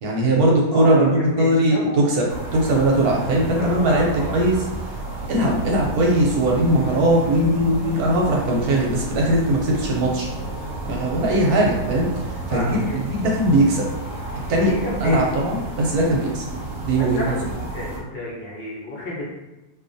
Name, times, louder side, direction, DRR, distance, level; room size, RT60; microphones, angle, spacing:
voice 1, 0.0-2.3 2.5-4.1 4.3-4.6 5.3-10.3 10.9-12.1 12.5-12.8 13.1-13.9 14.5-14.7 15.0-16.4 16.8-17.2, right 1 dB, 70° right, -1 dB, 1.0 m, -19 dB
voice 2, 0.7-2.1 3.5-4.4 11.2-11.6 12.5-13.0 14.5-15.2 16.9-17.3 17.7-19.2, left 1 dB, 45° left, -6 dB, 0.8 m, -31 dB
sound 1, 2.3-18.0, right 2 dB, 85° right, 0.5 m, -32 dB
2.7 x 2.3 x 2.6 m, 0.98 s
omnidirectional pair, 1.8 m